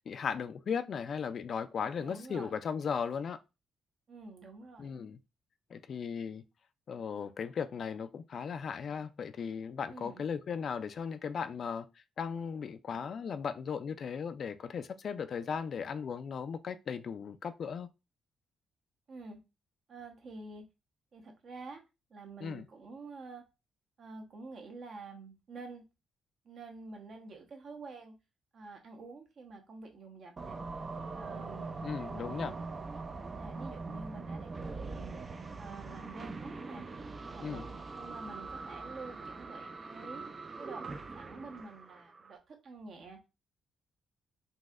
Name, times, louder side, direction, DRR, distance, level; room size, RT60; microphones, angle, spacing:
voice 1, 0.1-3.4 4.8-5.2 5.7-6.4 6.9-11.9 12.2-17.9 22.4-22.7 31.8-32.5 37.4-37.6, left 6 dB, 55° left, 0.3 m, -37 dB
voice 2, 2.0-2.5 4.1-4.9 9.9-10.2 19.1-19.4 19.9-20.6 21.1-21.8 22.1-23.4 24.0-25.8 26.4-28.1 28.5-30.6 31.1-31.7 32.1-33.0 33.4-35.2 35.6-36.8 37.3-40.2 40.6-40.9 41.1-43.2, right 3 dB, 55° right, 1.0 m, -48 dB
sound 1, 30.4-42.4, right 3 dB, 35° right, 0.4 m, -42 dB
4.0 x 2.7 x 2.4 m
cardioid pair, 90°, 0 cm